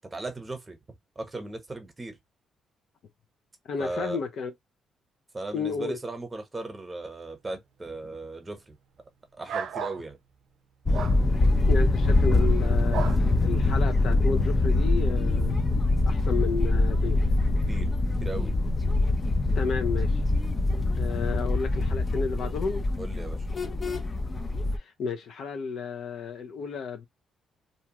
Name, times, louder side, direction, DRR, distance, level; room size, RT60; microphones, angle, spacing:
voice 1, 0.1-0.8 1.2-2.2 3.8-4.2 5.3-8.7 9.4-10.2 17.7-17.9 18.2-18.5 23.0-23.5, right 2 dB, 25° right, 1.0 m, -37 dB
voice 2, 3.6-4.5 5.5-6.0 11.7-15.5 16.1-17.3 19.5-20.2 21.0-22.9 24.7-27.1, left 5 dB, 65° left, 0.7 m, -32 dB
sound 1, 9.5-10.0 10.9-11.2 12.9-13.2, right 6 dB, 75° right, 0.4 m, -32 dB
sound 2, 10.9-24.8, left 2 dB, 30° left, 0.6 m, -24 dB
2.6 x 2.3 x 2.9 m
cardioid pair, 90°, 0 cm